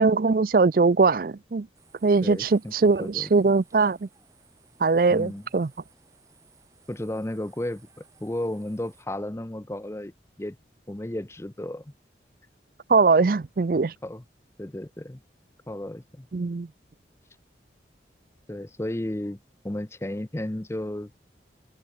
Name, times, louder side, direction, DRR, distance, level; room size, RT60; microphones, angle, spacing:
voice 1, 0.0-1.7 2.0-4.1 4.8-5.7 12.9-13.9 16.3-16.7, right 4 dB, 55° right, 0.5 m, -21 dB
sound 1, 1.7-9.1, right 5 dB, 20° right, 6.4 m, -59 dB
voice 2, 2.2-3.3 5.1-5.4 6.9-10.1 10.4-10.6 10.9-11.9 14.0-14.2 14.6-15.2 15.7-16.3 18.5-19.4 19.6-21.1, left 1 dB, 15° left, 0.6 m, -33 dB
head